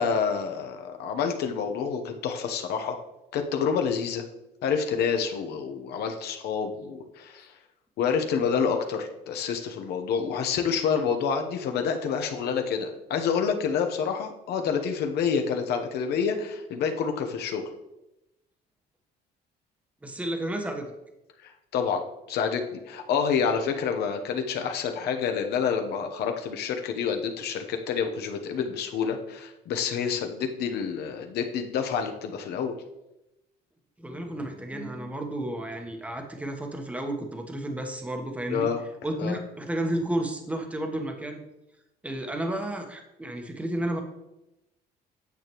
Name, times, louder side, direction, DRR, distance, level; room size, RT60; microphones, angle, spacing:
voice 1, 0.0-3.0 3.3-4.3 4.6-7.5 8.0-17.6 21.4-22.0 22.3-32.7 38.5-38.8 39.2-39.4, left 6 dB, 75° left, 5 dB, 0.9 m, -28 dB
voice 2, 20.0-20.9 34.0-38.7 39.0-41.4 42.0-44.0, right 1 dB, 10° right, 4 dB, 1.1 m, -32 dB
9.3 x 6.8 x 3.0 m, 0.92 s
cardioid pair, 110°, 17 cm